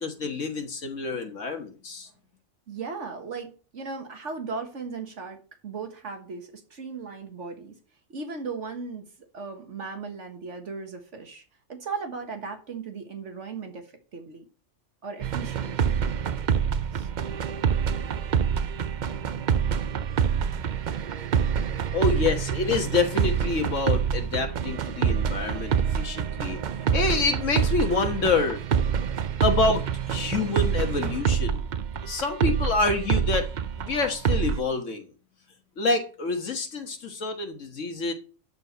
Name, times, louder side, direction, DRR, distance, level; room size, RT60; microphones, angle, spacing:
voice 1, 0.0-2.1 21.9-26.6 26.9-28.6 29.4-31.7 32.0-33.5 33.8-35.1 35.8-38.1, left 3 dB, 75° left, 1.7 m, -27 dB
voice 2, 2.7-7.8 8.1-9.1 9.3-11.4 11.7-14.5 15.0-16.0 16.9-17.1, right 4 dB, 70° right, 1.7 m, -37 dB
sound 1, 15.2-34.6, right 7 dB, 50° right, 0.5 m, -26 dB
12.5 x 4.5 x 5.6 m
omnidirectional pair, 1.3 m